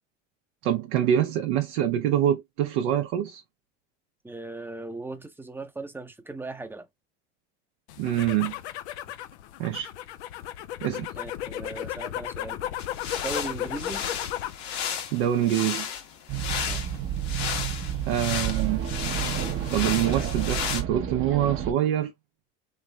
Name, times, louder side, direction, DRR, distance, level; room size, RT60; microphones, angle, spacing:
voice 1, 0.6-3.4 8.0-8.5 9.6-9.9 10.8-11.1 15.1-15.9 18.0-18.8 19.7-22.1, right 11 dB, 80° right, 0.7 m, -25 dB
voice 2, 4.2-6.9 11.2-12.7 13.2-14.1 16.7-16.8, right 2 dB, 5° right, 0.6 m, -38 dB
sound 1, 7.9-14.6 15.0-15.5, left 12 dB, 90° left, 0.5 m, -35 dB
sound 2, 12.8-20.8, left 8 dB, 65° left, 1.3 m, -34 dB
sound 3, 16.3-21.7, right 10 dB, 40° right, 0.8 m, -30 dB
3.2 x 3.2 x 2.3 m
supercardioid pair, 90°, 33 cm